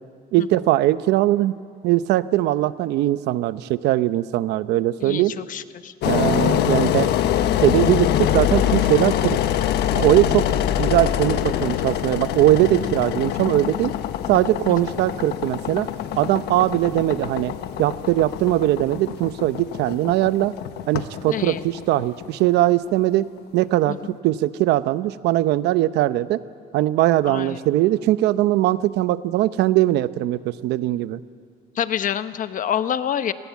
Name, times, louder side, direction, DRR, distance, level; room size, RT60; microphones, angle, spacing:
voice 1, 0.3-1.6 1.8-5.3 6.0-7.1 7.6-9.4 9.9-10.5 10.8-13.9 14.3-15.9 16.2-20.5 20.9-23.3 23.5-24.0 24.2-26.4 26.7-31.2, right 15 dB, 85° right, 14 dB, 0.8 m, -20 dB
voice 2, 5.0-5.9 10.3-10.5 14.7-14.8 21.3-21.6 23.9-24.0 27.2-27.6 31.7-33.3, left 9 dB, 50° left, 11 dB, 1.1 m, -27 dB
Engine, 6.0-22.9, left 11 dB, 80° left, 1.2 m, -24 dB
29.0 x 21.0 x 8.4 m, 2.2 s
cardioid pair, 110°, 17 cm